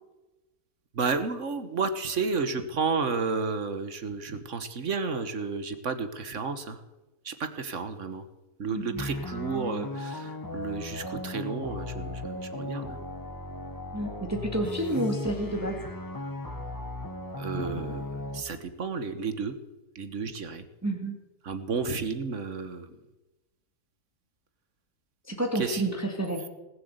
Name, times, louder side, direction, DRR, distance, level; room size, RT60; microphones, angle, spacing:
voice 1, 1.0-6.8 7.3-8.2 8.6-10.2 10.5-13.0 17.4-18.0 18.3-19.5 20.0-20.6 21.5-22.8 25.5-25.8, right 4 dB, 55° right, 10 dB, 1.4 m, -31 dB
voice 2, 8.7-9.1 13.9-15.8 20.8-21.2 25.3-26.5, right 1 dB, 10° right, 2 dB, 1.9 m, -30 dB
sound 1, 9.0-18.4, left 1 dB, 15° left, 1.1 m, -37 dB
19.0 x 7.9 x 8.0 m, 1.0 s
omnidirectional pair, 1.7 m